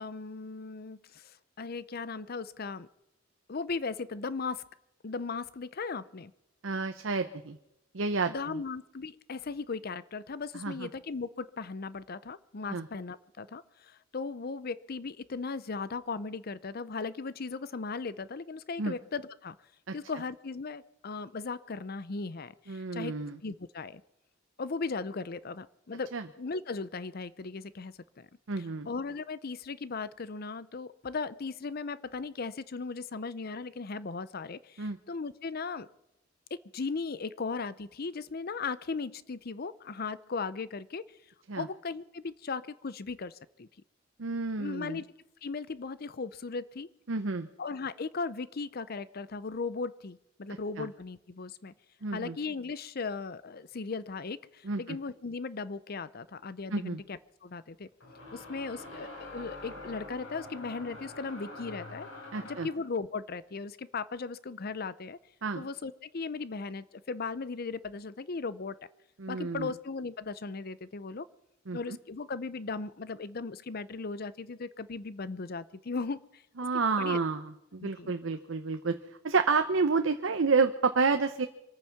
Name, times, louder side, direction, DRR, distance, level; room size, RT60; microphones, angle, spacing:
voice 1, 0.0-2.9 3.5-4.6 5.0-6.3 8.3-19.6 19.9-23.2 23.4-24.0 24.6-26.1 26.4-28.3 28.6-35.9 36.7-41.0 41.6-43.7 44.6-45.0 45.4-46.9 47.6-51.7 52.1-57.9 58.3-62.1 62.4-65.2 65.6-68.8 69.3-71.3 71.7-76.4 76.7-77.2 77.8-78.1, left 4 dB, 50° left, 17 dB, 0.6 m, -37 dB
voice 2, 6.6-7.6 7.9-8.6 10.6-10.9 12.7-12.9 18.8-18.9 19.9-20.0 22.7-23.4 26.1-26.2 28.5-28.9 34.8-35.0 41.5-41.7 44.2-45.0 47.1-47.5 50.8-50.9 52.0-52.4 54.6-55.0 56.7-57.0 62.3-62.7 65.4-65.7 69.2-69.7 71.7-71.8 76.6-79.0 79.2-81.5, right 4 dB, 90° right, 8 dB, 0.8 m, -29 dB
sound 1, 56.0-56.1 58.0-62.8, left 2 dB, 80° left, 4.5 m, -45 dB
25.5 x 9.1 x 5.9 m, 0.84 s
head